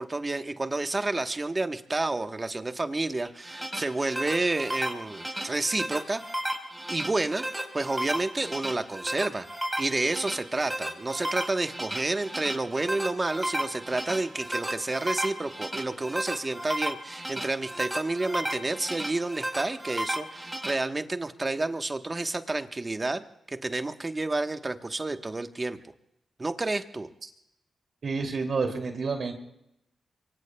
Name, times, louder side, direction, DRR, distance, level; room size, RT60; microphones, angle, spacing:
voice 1, 0.0-6.2 6.9-7.4 7.7-9.5 9.8-25.8 26.4-27.1, right 2 dB, 30° right, 7 dB, 1.2 m, -30 dB
sound 1, 3.2-20.7, right 1 dB, 15° right, 4.4 m, -34 dB
voice 2, 28.0-29.3, right 4 dB, 65° right, 4 dB, 2.6 m, -29 dB
26.0 x 23.5 x 2.3 m, 0.84 s
cardioid pair, 55°, 0 cm